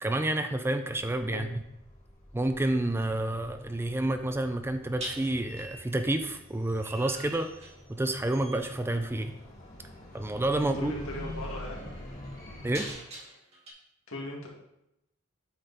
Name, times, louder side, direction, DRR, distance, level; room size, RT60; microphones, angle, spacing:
voice 1, 0.0-1.6 2.3-7.5 7.9-9.4 10.1-10.9 12.6-12.8, right 1 dB, 10° right, 8 dB, 0.4 m, -29 dB
sound 1, 0.9-12.9, left 1 dB, 30° left, 2.8 m, -47 dB
sound 2, 2.3-2.6 4.9-8.0 8.3-8.7 10.2-10.4 10.9-13.7, right 1 dB, 30° right, 2.0 m, -45 dB
voice 2, 10.7-11.9 14.1-14.5, left 1 dB, 75° left, -2 dB, 2.1 m, -38 dB
8.6 x 5.7 x 4.1 m, 0.85 s
head